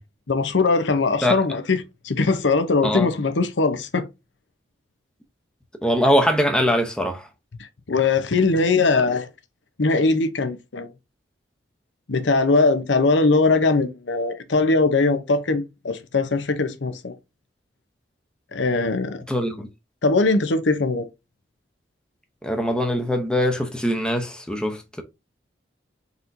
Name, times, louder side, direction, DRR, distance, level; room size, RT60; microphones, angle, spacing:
voice 1, 0.3-4.1 7.9-9.3 9.8-10.9 12.1-17.1 18.5-19.2 20.0-21.1, left 3 dB, 90° left, 0.8 m, -21 dB
voice 2, 5.8-7.3 19.3-19.7 22.4-25.0, equal, 5° left, 0.6 m, -22 dB
4.3 x 4.1 x 2.6 m
head